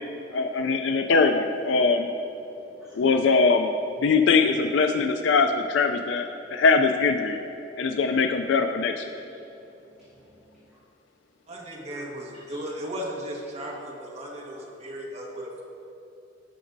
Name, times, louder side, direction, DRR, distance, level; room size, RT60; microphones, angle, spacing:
voice 1, 0.3-2.1 3.0-3.7 4.0-7.4 7.8-9.1, left 4 dB, 85° left, 6 dB, 0.4 m, -22 dB
voice 2, 2.4-2.9 7.6-7.8 9.3-10.8 11.8-12.0 12.4-12.6, equal, 5° right, -13 dB, 2.1 m, -53 dB
voice 3, 11.5-15.6, equal, 35° right, -3 dB, 1.4 m, -36 dB
16.5 x 6.1 x 2.6 m, 2.9 s
head